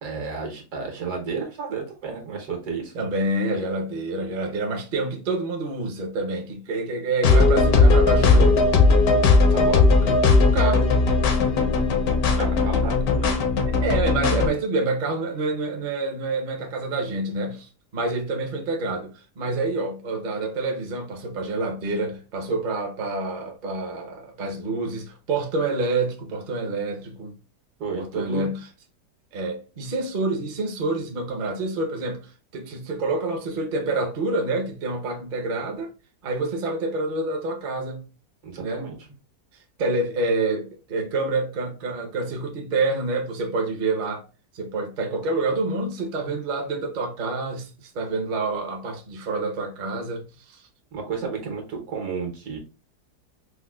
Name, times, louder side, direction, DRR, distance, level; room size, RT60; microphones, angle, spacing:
voice 1, 0.0-2.9 9.5-9.8 12.4-13.4 27.8-28.5 38.4-39.0 50.9-52.6, right 5 dB, 75° right, 1.5 m, -32 dB
voice 2, 2.9-8.6 10.0-10.2 10.5-10.9 12.7-12.8 13.6-27.3 27.9-28.6 29.3-35.9 36.2-38.0 38.6-38.9 39.8-44.2 44.5-50.6, right 3 dB, 45° right, 0.6 m, -27 dB
sound 1, 7.2-14.5, left 3 dB, 70° left, 1.1 m, -18 dB
4.6 x 2.1 x 2.3 m
omnidirectional pair, 1.7 m